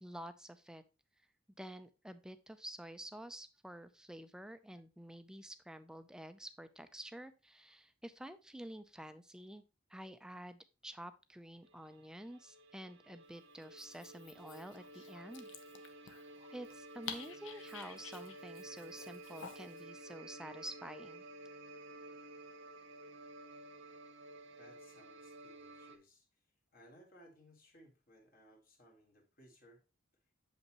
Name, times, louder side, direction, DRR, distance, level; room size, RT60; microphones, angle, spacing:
voice 1, 0.0-0.8 1.6-9.6 9.9-15.5 16.5-21.2, right 1 dB, 5° right, 11 dB, 0.4 m, -49 dB
sound 1, 11.6-26.0, right 2 dB, 65° right, 0.7 m, -53 dB
Dog, 13.6-19.8, left 7 dB, 70° left, 0.7 m, -52 dB
voice 2, 24.5-26.3 26.7-29.8, equal, 50° left, 0 dB, 1.6 m, -62 dB
7.0 x 5.3 x 2.9 m, 0.30 s
head